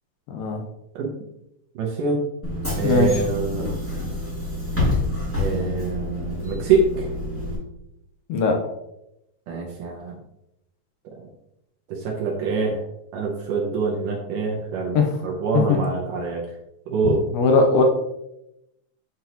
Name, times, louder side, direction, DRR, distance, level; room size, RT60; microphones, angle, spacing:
voice 1, 0.3-0.6 2.8-3.1 8.3-8.6 15.0-15.1 15.7-15.8 17.0-17.8, left 3 dB, 80° left, 1 dB, 2.4 m, -19 dB
voice 2, 1.8-2.2 2.8-3.8 5.4-7.1 9.5-10.2 11.2-11.3 11.9-12.8 13.1-15.0 15.2-16.5 16.9-17.3, right 4 dB, 70° right, -2 dB, 2.1 m, -25 dB
Bus / Engine, 2.4-7.6, left 1 dB, 10° left, 0.6 m, -27 dB
9.1 x 4.6 x 2.9 m, 0.86 s
omnidirectional pair, 4.6 m